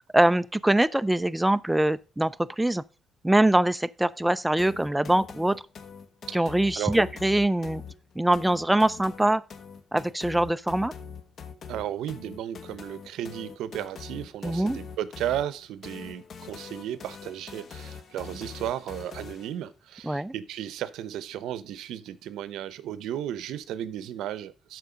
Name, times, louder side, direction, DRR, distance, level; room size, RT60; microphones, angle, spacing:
voice 1, 0.1-2.8 3.2-5.6 6.3-7.8 8.2-9.4 9.9-10.9 14.4-14.8 20.0-20.3, right 1 dB, 5° right, 0.4 m, -23 dB
sound 1, 4.6-19.6, left 6 dB, 50° left, 1.2 m, -43 dB
voice 2, 11.7-24.8, right 11 dB, 85° right, 0.8 m, -34 dB
12.5 x 4.5 x 5.1 m
cardioid pair, 120°, 0 cm